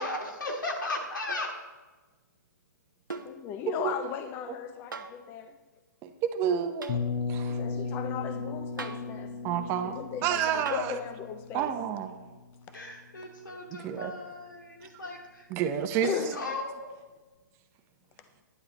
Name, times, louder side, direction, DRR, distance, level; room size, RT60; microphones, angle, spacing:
voice 1, 0.0-1.5 12.7-15.5 16.3-16.9, left 2 dB, 80° left, 0 dB, 2.7 m, -36 dB
sound 1, 1.3-1.6 3.1-3.4 4.9-5.2 6.8-7.0 8.8-9.1 10.7-11.0 12.7-12.8, right 4 dB, 85° right, 0.9 m, -40 dB
voice 2, 3.1-5.6 7.5-11.7 16.0-16.4 18.2-18.3, left 8 dB, 20° left, 9 dB, 0.4 m, -37 dB
voice 3, 6.0-7.0 7.3-7.6 9.4-9.9 10.2-11.0 11.5-12.2 13.7-14.1 15.5-16.1, right 9 dB, 25° right, 8 dB, 0.7 m, -29 dB
sound 2, 6.9-12.7, left 4 dB, 45° left, 1.2 m, -36 dB
11.0 x 10.0 x 4.1 m, 1.3 s
hypercardioid pair, 135°, 10 cm